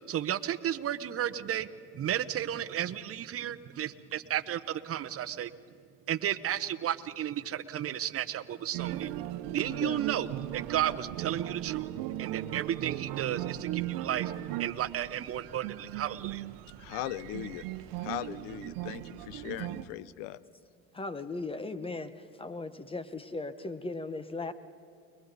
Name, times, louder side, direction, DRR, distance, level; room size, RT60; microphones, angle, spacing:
voice 1, 0.0-1.7 1.9-5.5 6.1-9.1 9.5-11.9 12.2-14.3 14.6-16.5, right 11 dB, 45° right, 12 dB, 0.9 m, -33 dB
sound 1, 8.7-19.9, right 14 dB, 85° right, 0.8 m, -37 dB
voice 2, 9.7-10.0 16.8-17.6 18.0-20.4, left 13 dB, 85° left, 18 dB, 0.7 m, -39 dB
voice 3, 20.9-24.5, left 3 dB, 15° left, 12 dB, 1.0 m, -37 dB
29.5 x 21.5 x 4.1 m, 2.4 s
supercardioid pair, 90°, 32 cm